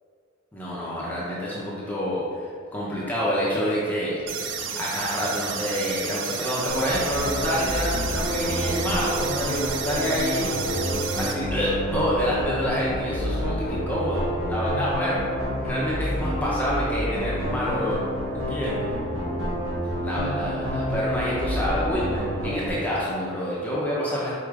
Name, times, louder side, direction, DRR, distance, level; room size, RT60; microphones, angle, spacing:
voice 1, 0.5-4.2 4.8-10.5 11.2-14.2 14.5-15.2 15.6-18.0 18.3-18.8 20.0-24.3, equal, 10° left, -7 dB, 0.6 m, -27 dB
sound 1, 4.3-11.3, right 6 dB, 60° right, 0.4 m, -31 dB
sound 2, 6.7-22.7, equal, 80° right, 1.1 m, -28 dB
4.8 x 4.3 x 2.4 m, 2.2 s
head